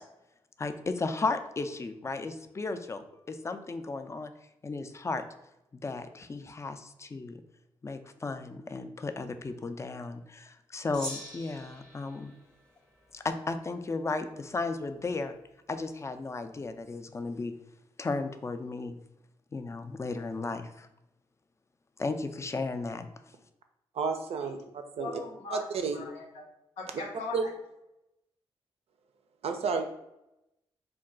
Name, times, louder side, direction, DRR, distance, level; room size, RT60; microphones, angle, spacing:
voice 1, 0.6-4.3 4.6-5.2 5.8-7.4 7.8-12.3 13.1-15.3 15.7-17.5 18.0-19.0 19.5-20.9 22.0-23.1, left 3 dB, 25° left, 8 dB, 0.3 m, -34 dB
Gong, 10.9-13.6, equal, 5° left, 0.7 m, -44 dB
voice 2, 23.9-25.1 25.5-26.0 27.3-27.4 29.4-29.9, right 5 dB, 60° right, 6 dB, 0.4 m, -31 dB
voice 3, 25.0-26.4 26.8-27.5, left 3 dB, 80° left, 0 dB, 0.6 m, -40 dB
2.2 x 2.2 x 3.7 m, 0.88 s
supercardioid pair, 45°, 11 cm